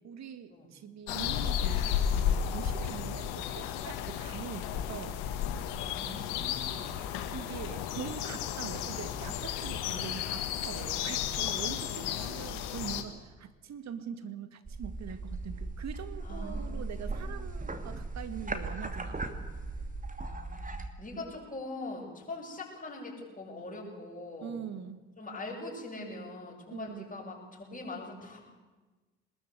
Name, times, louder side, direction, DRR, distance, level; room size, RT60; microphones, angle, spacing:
voice 1, 0.0-5.2 7.3-19.5 24.4-25.0 26.7-27.1, right 8 dB, 55° right, 10 dB, 2.0 m, -43 dB
sound 1, 1.1-13.0, left 9 dB, 75° left, 1.7 m, -33 dB
voice 2, 5.8-6.9 11.6-12.6 16.2-17.6 20.2-20.7 21.0-24.6 25.2-28.5, left 2 dB, 25° left, -6 dB, 7.1 m, -43 dB
sound 2, 14.7-20.9, right 2 dB, 25° right, 2.7 m, -38 dB
22.5 x 20.5 x 8.3 m, 1.3 s
hypercardioid pair, 50°, 33 cm